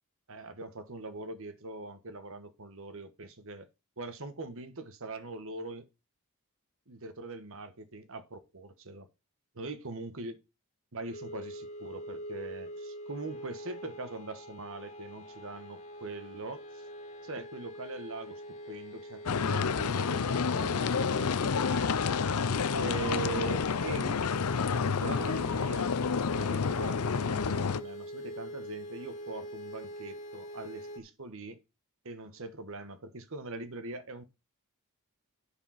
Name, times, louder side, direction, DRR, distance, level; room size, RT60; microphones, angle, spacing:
voice 1, 0.3-3.7 4.0-5.9 6.9-9.1 9.5-10.4 10.9-16.8 17.2-18.4 18.7-21.9 22.7-24.2 24.9-25.9 26.3-31.6 32.0-34.2, right 3 dB, 65° right, 1.3 m, -42 dB
sound 1, 11.1-31.0, equal, 30° left, 1.8 m, -44 dB
sound 2, 19.3-27.8, left 5 dB, 85° left, 0.6 m, -29 dB
10.0 x 5.0 x 5.8 m
head